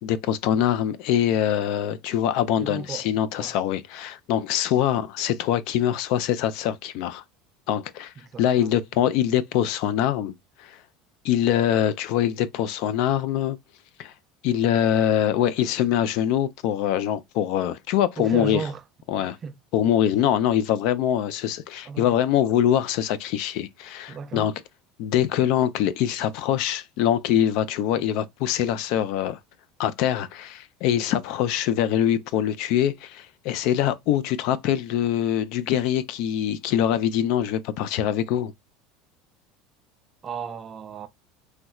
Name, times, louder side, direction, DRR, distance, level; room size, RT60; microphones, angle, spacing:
voice 1, 0.0-7.2 7.7-8.1 8.4-10.3 10.6-10.8 11.2-13.6 14.0-14.1 14.4-18.6 19.1-19.4 19.7-24.5 25.0-29.4 29.8-38.5, left 10 dB, 60° left, 0.3 m, -23 dB
voice 2, 2.6-3.1 3.4-3.6 8.2-8.7 18.2-18.8 19.2-19.6 21.8-22.1 24.1-24.5 40.2-41.1, right 6 dB, 25° right, 0.4 m, -34 dB
3.1 x 2.9 x 2.3 m
cardioid pair, 150°, 0 cm